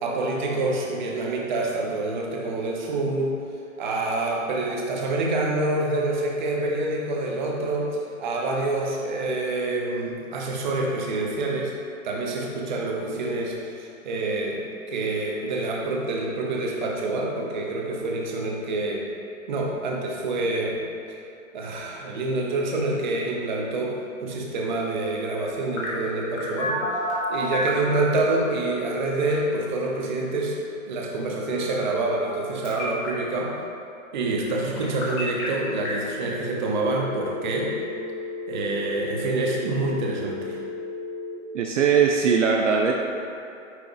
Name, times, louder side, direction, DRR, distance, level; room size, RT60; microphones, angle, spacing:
voice 1, 0.0-3.3 3.8-11.7 12.0-19.0 19.5-20.8 21.5-23.9 24.2-26.8 27.3-30.6 30.9-33.5 34.1-37.8 38.5-40.6, right 2 dB, 35° right, -1 dB, 0.9 m, -27 dB
Telephone, 25.8-27.9 28.4-29.4 31.4-32.4 32.6-33.1 34.8-35.4 35.9-36.0 36.3-41.3, left 1 dB, 25° left, 1.3 m, -32 dB
voice 2, 41.5-42.9, right 6 dB, 65° right, 1 dB, 0.6 m, -20 dB
9.1 x 3.3 x 4.0 m, 2.6 s
hypercardioid pair, 165°, 40 cm